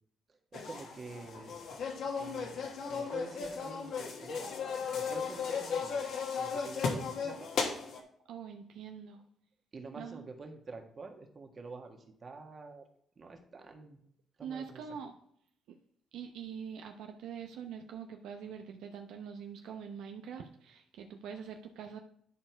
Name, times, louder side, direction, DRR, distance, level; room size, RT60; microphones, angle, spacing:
sound 1, 0.5-8.0, left 5 dB, 70° left, 1.5 m, -36 dB
voice 1, 0.5-1.6 2.2-4.5 4.9-6.0 6.4-7.5 9.7-12.9 13.2-14.0 14.4-15.0, right 3 dB, 40° right, 3 dB, 1.5 m, -48 dB
voice 2, 8.3-9.2 10.0-10.3 14.4-15.1 16.1-22.0, right 7 dB, 85° right, 4 dB, 0.7 m, -44 dB
10.0 x 4.5 x 4.5 m, 0.66 s
cardioid pair, 90°, 0 cm